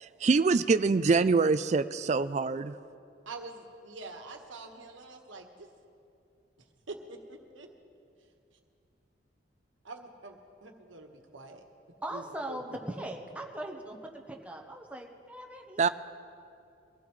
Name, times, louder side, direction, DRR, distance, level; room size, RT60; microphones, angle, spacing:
voice 1, 0.0-2.8 15.8-15.9, right 4 dB, 35° right, 12 dB, 0.3 m, -25 dB
voice 2, 3.2-5.7 6.9-7.7 9.8-11.6 12.1-13.1, right 3 dB, 85° right, 3 dB, 1.4 m, -46 dB
voice 3, 12.0-14.0 14.3-15.9, right 1 dB, 5° right, 1 dB, 1.0 m, -40 dB
23.0 x 15.5 x 3.2 m, 2.5 s
head